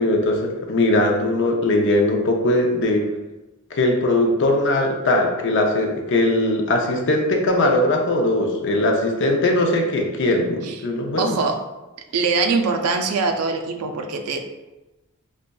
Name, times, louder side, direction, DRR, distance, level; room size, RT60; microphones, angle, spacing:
voice 1, 0.0-3.1 3.7-11.4, left 1 dB, 55° left, 2 dB, 0.5 m, -20 dB
voice 2, 11.2-11.6 12.1-14.5, right 4 dB, 85° right, 5 dB, 0.4 m, -22 dB
5.1 x 2.4 x 2.2 m, 1.0 s
head